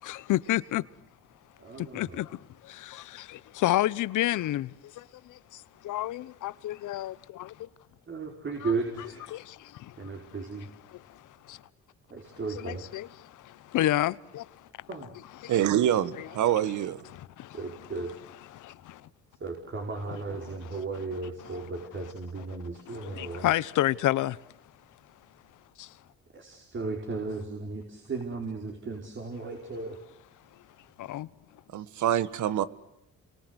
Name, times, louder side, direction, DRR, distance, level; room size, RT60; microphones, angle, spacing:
voice 1, 0.0-0.8 1.9-2.3 2.8-4.7 5.8-7.5 8.6-8.7 9.3-9.4 11.5-11.6 12.5-13.1 13.7-14.4 15.4-15.5 16.2-16.3 23.1-24.4 31.1-31.3, left 14 dB, 80° left, 1.0 m, -28 dB
voice 2, 1.6-2.2 8.1-9.3 10.0-10.7 12.1-12.9 14.9-15.1 17.5-18.1 19.4-23.5 26.3-30.0, right 3 dB, 40° right, 5.0 m, -35 dB
voice 3, 15.5-17.0 31.7-32.6, right 11 dB, 75° right, 1.6 m, -25 dB
29.5 x 23.5 x 8.1 m
cardioid pair, 90°, 30 cm